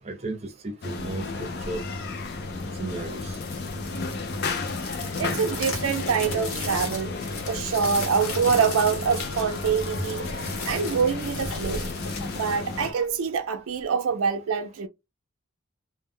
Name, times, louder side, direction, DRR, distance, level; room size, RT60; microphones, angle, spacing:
voice 1, 0.0-1.8 2.8-3.4, right 2 dB, 30° right, 0.6 m, -34 dB
sound 1, 0.8-12.9, left 3 dB, 50° left, 0.5 m, -33 dB
sound 2, 3.1-13.4, left 3 dB, 85° left, 1.1 m, -37 dB
voice 2, 5.2-7.1 7.5-10.3 10.6-11.9 12.3-14.9, right 6 dB, 80° right, 0.4 m, -25 dB
2.1 x 2.0 x 3.6 m
head